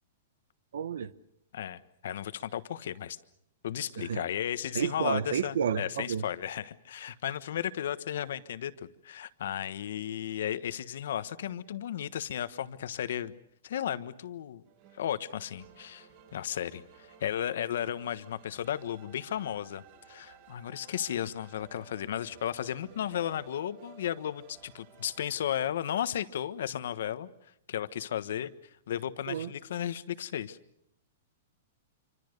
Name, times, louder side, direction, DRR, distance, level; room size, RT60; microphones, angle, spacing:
voice 1, 0.7-1.1 4.0-4.2 4.7-6.2 29.3-29.5, right 8 dB, 80° right, 1.0 m, -31 dB
voice 2, 1.5-3.2 3.6-13.4 13.6-14.6 14.9-27.3 27.7-28.5 28.9-30.6, left 10 dB, 70° left, 1.3 m, -34 dB
sound 1, 14.7-25.4, right 7 dB, 45° right, 5.5 m, -56 dB
27.0 x 25.0 x 6.7 m
hypercardioid pair, 160°, 0 cm